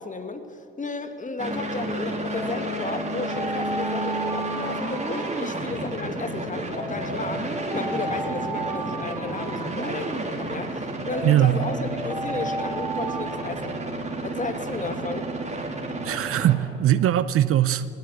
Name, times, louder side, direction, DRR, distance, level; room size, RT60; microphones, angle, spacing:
voice 1, 0.0-13.8 14.2-15.4, left 3 dB, 25° left, 8 dB, 2.2 m, -33 dB
sound 1, 1.4-16.6, right 2 dB, 25° right, 3.5 m, -31 dB
Alarm, 2.3-6.0 6.7-10.4 11.1-14.3, right 2 dB, 5° right, 3.9 m, -35 dB
voice 2, 11.2-11.6 16.0-17.8, right 12 dB, 50° right, 16 dB, 0.7 m, -20 dB
21.0 x 17.0 x 7.8 m, 2.7 s
hypercardioid pair, 60°, 30 cm